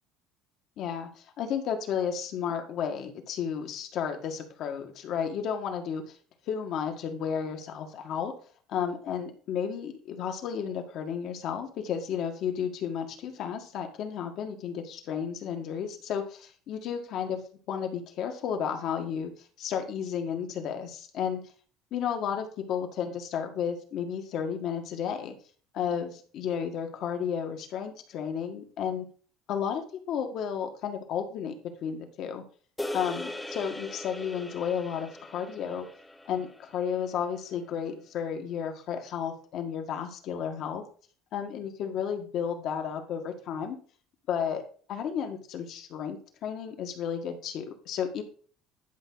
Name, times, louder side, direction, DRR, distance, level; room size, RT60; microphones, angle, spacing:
voice 1, 0.8-6.2 6.5-8.3 8.7-17.4 17.7-19.3 19.6-21.4 21.9-25.3 25.7-29.0 29.5-32.4 32.9-35.9 36.2-40.8 41.3-43.8 44.3-44.6 44.9-48.2, left 7 dB, 50° left, 5 dB, 1.7 m, -32 dB
sound 1, 32.8-37.3, left 1 dB, 5° left, 0.7 m, -40 dB
11.5 x 5.7 x 3.9 m, 0.43 s
cardioid pair, 165°, 0 cm